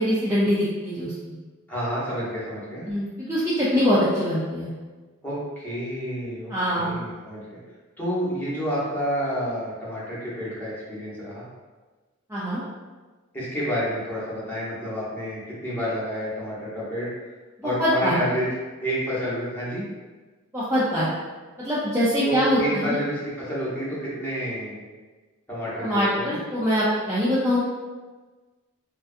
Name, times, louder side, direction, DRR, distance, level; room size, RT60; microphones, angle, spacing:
voice 1, 0.0-1.3 2.9-4.7 6.5-6.9 12.3-12.6 17.6-18.2 20.5-21.1 21.6-23.0 25.8-27.6, equal, 15° right, -10 dB, 0.4 m, -23 dB
voice 2, 1.7-2.8 5.2-7.6 8.0-11.4 13.3-17.1 17.6-18.5 18.8-19.8 22.3-24.8 25.5-26.4, equal, 10° left, -9 dB, 0.8 m, -29 dB
2.5 x 2.3 x 2.4 m, 1.3 s
head